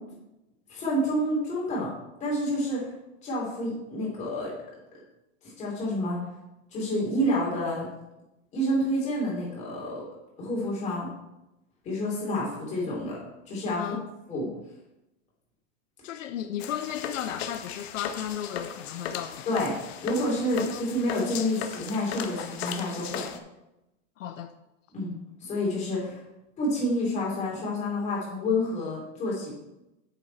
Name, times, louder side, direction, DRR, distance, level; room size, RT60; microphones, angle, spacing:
voice 1, 0.7-1.9 2.2-2.9 3.2-4.5 5.4-6.2 6.7-7.9 8.5-10.1 10.4-11.1 11.8-13.2 13.5-13.9 14.3-14.5 19.5-19.7 20.0-23.2 24.9-25.1 25.4-26.2 26.6-29.5, left 1 dB, 20° left, -4 dB, 3.3 m, -28 dB
voice 2, 13.8-14.1 16.0-19.4 20.5-20.8 24.2-24.5, left 10 dB, 80° left, 9 dB, 0.8 m, -35 dB
sound 1, 16.6-23.4, left 8 dB, 55° left, 0.9 m, -37 dB
8.9 x 7.0 x 4.2 m, 0.93 s
supercardioid pair, 165°, 38 cm